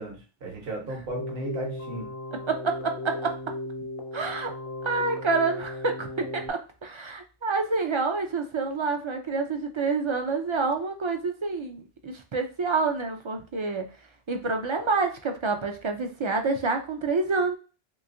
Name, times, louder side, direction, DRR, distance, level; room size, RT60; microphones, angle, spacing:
voice 1, 0.0-2.1, right 2 dB, 70° right, -1 dB, 1.2 m, -35 dB
Keyboard (musical), 1.1-6.5, left 1 dB, 40° left, 0.6 m, -36 dB
voice 2, 2.5-3.4 4.1-4.5 4.8-13.8 14.3-17.6, right 4 dB, 50° right, 5 dB, 0.3 m, -28 dB
3.4 x 3.0 x 2.5 m, 0.33 s
omnidirectional pair, 1.1 m